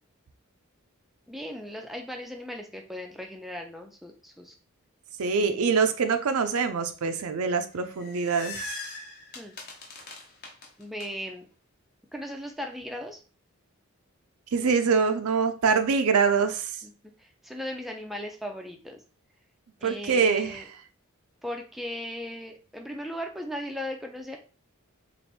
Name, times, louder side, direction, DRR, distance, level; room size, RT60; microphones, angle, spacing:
voice 1, 1.3-4.5 9.3-9.5 10.8-11.5 12.1-13.2 16.8-16.9 17.2-19.0 19.8-20.7 21.4-24.4, equal, ahead, 2 dB, 0.4 m, -37 dB
voice 2, 5.2-8.7 14.5-16.7 19.8-20.6, right 5 dB, 85° right, 9 dB, 0.5 m, -24 dB
sound 1, 7.7-11.1, left 2 dB, 45° left, 0.9 m, -40 dB
3.3 x 2.6 x 4.1 m, 0.36 s
head